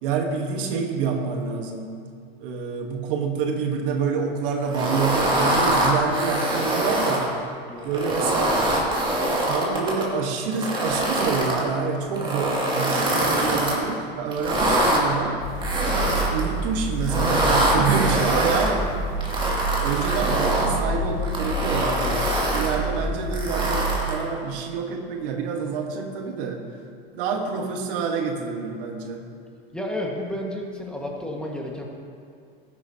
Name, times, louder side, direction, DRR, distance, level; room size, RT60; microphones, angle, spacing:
voice 1, 0.0-1.9 2.4-7.4 7.8-8.6 9.4-15.4 16.2-18.9 19.8-22.2 22.5-26.7 27.1-29.3, right 5 dB, 65° right, 3 dB, 1.4 m, -27 dB
sound 1, 4.7-7.2 7.8-10.0 10.5-11.6 12.1-13.8 14.3-15.0 15.6-16.5 17.0-18.7 19.2-20.7 21.2-22.8 23.3-24.2, right 1 dB, 15° right, 2.4 m, -24 dB
sound 2, 15.4-24.0, right 2 dB, 70° left, 1.6 m, -28 dB
voice 2, 29.7-31.8, left 1 dB, 5° left, -2 dB, 1.6 m, -31 dB
14.5 x 10.0 x 2.8 m, 2.3 s
hypercardioid pair, 115°, 30 cm